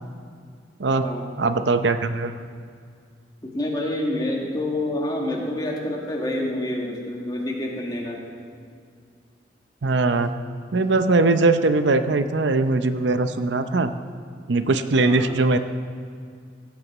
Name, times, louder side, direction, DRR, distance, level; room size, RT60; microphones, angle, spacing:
voice 1, 0.8-1.1 1.4-2.3 9.8-10.3 10.7-13.9 14.5-15.6, right 3 dB, 80° right, 10 dB, 0.6 m, -20 dB
voice 2, 3.4-8.2 15.0-15.3, left 1 dB, 25° left, -1 dB, 1.9 m, -27 dB
17.0 x 8.3 x 6.1 m, 2.2 s
head